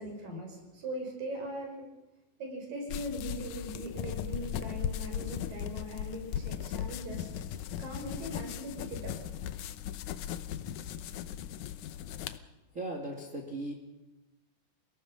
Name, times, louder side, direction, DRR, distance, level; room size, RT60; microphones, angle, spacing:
voice 1, 0.0-1.9 2.4-7.3 7.8-9.1 9.6-9.7, equal, 80° right, 2 dB, 7.1 m, -40 dB
sound 1, 2.9-12.4, left 10 dB, 70° left, 2.1 m, -38 dB
voice 2, 12.7-13.7, right 1 dB, 25° right, 1 dB, 2.4 m, -37 dB
28.5 x 18.0 x 6.2 m, 0.99 s
omnidirectional pair, 3.9 m